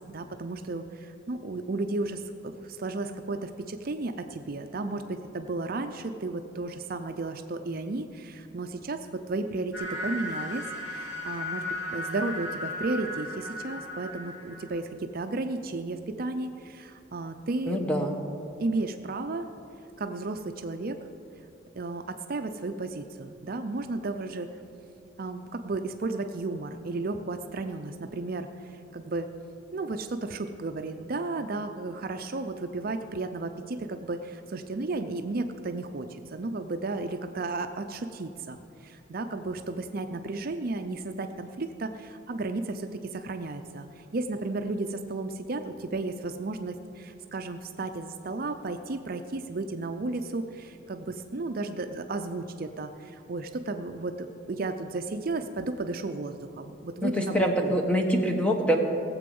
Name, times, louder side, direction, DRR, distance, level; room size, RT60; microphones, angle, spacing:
voice 1, 0.1-17.8 18.6-19.5 20.0-21.0 21.8-24.5 25.2-29.3 29.7-57.8, right 2 dB, 50° right, 7 dB, 0.5 m, -33 dB
sound 1, 9.7-14.8, left 1 dB, 70° left, 2.8 m, -36 dB
voice 2, 17.7-18.1 57.0-58.8, equal, 5° left, 3 dB, 1.1 m, -25 dB
18.0 x 7.7 x 5.4 m, 2.6 s
head